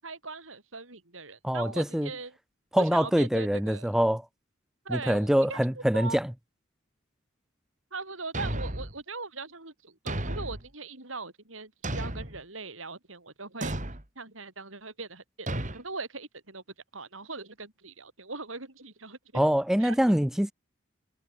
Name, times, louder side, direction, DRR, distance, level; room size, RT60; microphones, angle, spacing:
voice 1, 0.0-2.4 2.7-3.9 4.8-6.2 7.9-13.8 14.1-15.5 15.7-16.6 16.9-19.4 19.8-20.2, right 3 dB, 90° right, 6.7 m, -40 dB
voice 2, 1.4-2.1 2.7-4.2 5.1-6.3 19.3-20.5, equal, ahead, 0.4 m, -24 dB
Thump thud, 8.3-9.0 10.1-10.7 11.8-12.4 13.6-14.0 15.5-15.8, right 1 dB, 40° right, 3.9 m, -33 dB
head